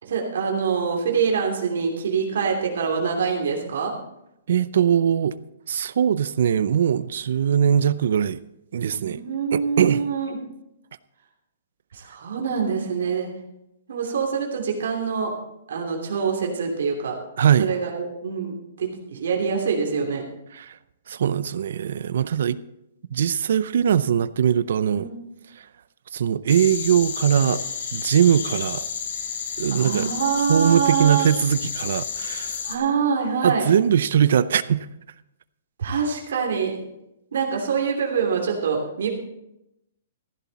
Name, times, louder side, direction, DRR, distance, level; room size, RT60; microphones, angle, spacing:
voice 1, 0.0-4.0 8.9-10.4 11.9-13.3 13.9-15.3 15.7-17.1 17.6-20.2 24.9-25.1 29.7-31.3 32.6-33.6 35.8-36.8 37.3-39.1, right 6 dB, 75° right, 3.0 m, -25 dB
voice 2, 4.5-5.3 5.7-8.4 8.7-9.2 9.5-10.0 17.4-17.7 20.5-20.8 21.1-22.6 23.1-25.1 26.1-27.6 27.9-28.9 29.6-30.1 30.5-32.6 33.4-34.9, right 8 dB, 60° right, 0.5 m, -21 dB
sound 1, 26.5-32.8, left 7 dB, 50° left, 1.9 m, -31 dB
15.0 x 11.0 x 4.2 m
hypercardioid pair, 175°, 0 cm